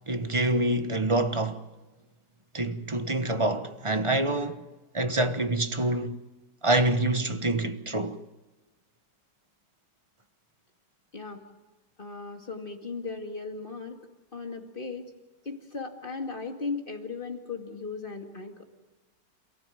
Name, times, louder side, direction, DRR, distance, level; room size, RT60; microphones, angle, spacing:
voice 1, 0.1-1.6 2.5-4.7 4.9-6.2 6.6-8.2, right 1 dB, 20° right, 1.0 m, -26 dB
voice 2, 12.0-14.0 14.3-15.1 15.4-18.6, left 4 dB, 30° left, 2.4 m, -37 dB
28.0 x 15.5 x 9.2 m
omnidirectional pair, 1.9 m